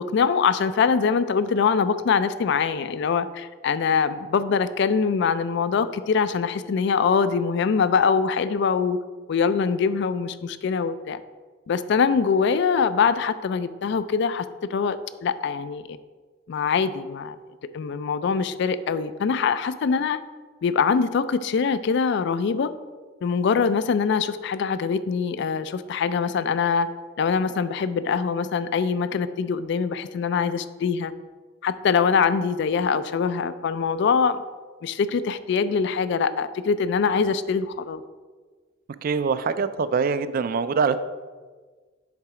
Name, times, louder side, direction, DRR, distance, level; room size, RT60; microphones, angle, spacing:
voice 1, 0.0-9.0 9.3-11.2 11.7-16.0 16.5-17.4 17.7-20.2 20.6-22.7 23.2-26.9 27.2-31.1 31.6-34.4 34.8-38.0, left 5 dB, 65° left, 14 dB, 0.3 m, -23 dB
voice 2, 39.0-41.0, right 5 dB, 50° right, 13 dB, 0.3 m, -23 dB
7.3 x 3.8 x 4.7 m, 1.4 s
head